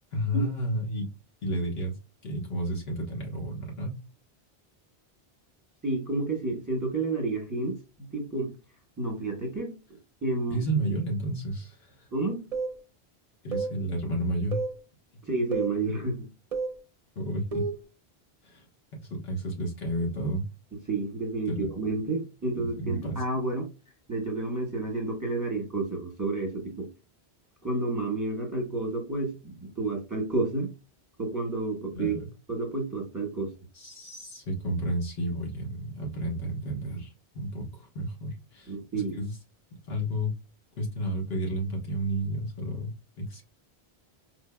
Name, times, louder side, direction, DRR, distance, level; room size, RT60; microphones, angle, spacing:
voice 1, 0.1-1.1 1.4-1.9 2.2-4.0 10.5-12.1 13.4-14.6 17.1-17.7 18.4-18.7 18.9-20.4 21.5-21.7 22.6-23.2 31.9-32.3 33.7-39.4 39.9-40.3 40.8-43.4, right 1 dB, 70° left, 1.5 m, -31 dB
voice 2, 5.8-8.5 9.0-9.7 10.2-10.6 12.1-12.4 15.3-16.3 20.9-23.7 24.1-26.9 27.6-30.7 31.2-32.2 32.5-33.5 38.7-39.2, right 2 dB, 20° right, 1.1 m, -30 dB
sound 1, 12.5-12.8 13.5-13.8 14.5-14.8 15.5-15.8 16.5-16.8 17.5-17.8, right 4 dB, 40° right, 0.7 m, -30 dB
4.5 x 2.7 x 2.2 m
omnidirectional pair, 1.1 m